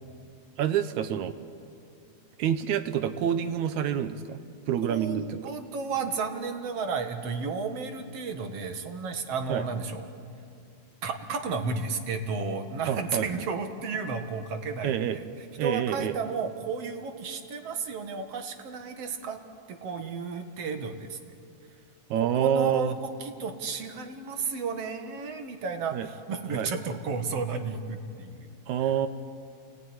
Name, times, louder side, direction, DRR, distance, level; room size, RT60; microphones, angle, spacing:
voice 1, 0.6-1.4 2.4-4.4 4.7-5.5 9.5-9.6 12.9-13.3 14.8-15.2 15.6-16.2 22.1-22.9 25.9-26.1 26.5-26.7 28.7-29.1, right 9 dB, 75° right, 10 dB, 2.2 m, -27 dB
voice 2, 4.8-10.1 11.0-19.4 19.7-21.2 22.3-28.5 28.8-28.9, right 5 dB, 60° right, 6 dB, 2.4 m, -33 dB
29.0 x 18.0 x 9.6 m, 2.4 s
omnidirectional pair, 3.4 m